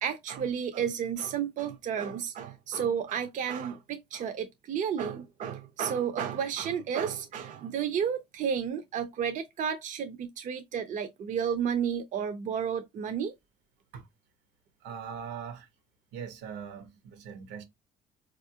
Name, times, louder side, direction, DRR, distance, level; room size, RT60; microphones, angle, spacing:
voice 1, 0.0-13.3, right 8 dB, 50° right, 0.5 m, -32 dB
voice 2, 14.8-15.7 16.1-17.6, right 7 dB, 85° right, 0.9 m, -41 dB
4.0 x 2.5 x 2.7 m
cardioid pair, 110°, 17 cm